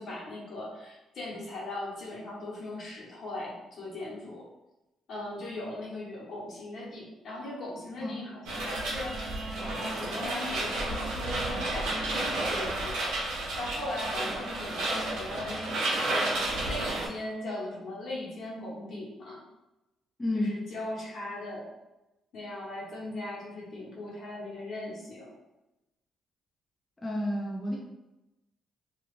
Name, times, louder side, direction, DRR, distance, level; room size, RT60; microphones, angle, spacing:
voice 1, 0.0-4.5 5.1-13.1 13.6-19.4 20.3-21.7 22.3-25.3, left 1 dB, 60° left, -5 dB, 1.1 m, -39 dB
sound 1, 8.5-17.1, right 2 dB, 90° right, 0.7 m, -31 dB
voice 2, 20.2-20.6 27.0-27.8, left 1 dB, 20° left, -3 dB, 0.5 m, -30 dB
2.4 x 2.3 x 3.2 m, 0.99 s
cardioid pair, 90°, 0 cm